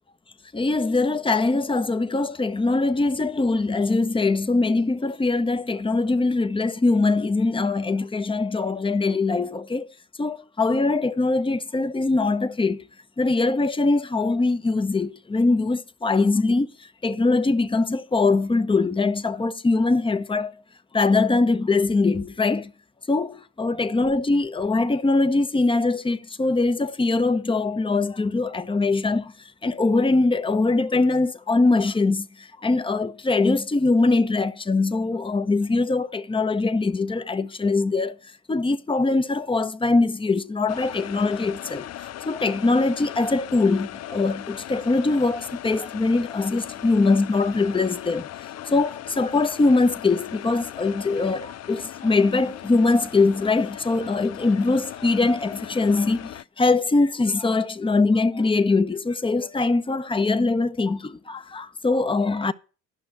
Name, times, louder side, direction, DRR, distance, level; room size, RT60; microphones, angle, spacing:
voice 1, 0.5-9.9 10.2-12.8 13.2-20.5 20.9-22.7 23.1-38.2 38.5-48.3 48.6-62.5, left 3 dB, 15° left, 0.9 m, -22 dB
sound 1, 40.7-56.4, left 12 dB, 45° left, 0.5 m, -38 dB
12.0 x 6.2 x 9.2 m
supercardioid pair, 75°, 38 cm